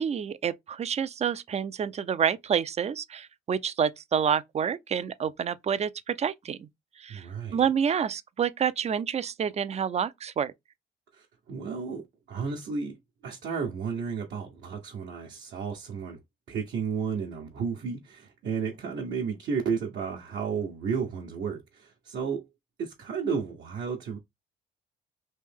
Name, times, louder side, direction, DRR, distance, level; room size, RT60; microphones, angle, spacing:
voice 1, 0.0-6.7 7.0-7.3 7.5-10.5, right 7 dB, 35° right, 0.4 m, -28 dB
voice 2, 7.1-7.6 11.1-13.0 13.2-16.2 16.5-22.5 22.8-24.2, right 6 dB, 65° right, 0.9 m, -33 dB
3.2 x 2.7 x 3.4 m
cardioid pair, 90°, 20 cm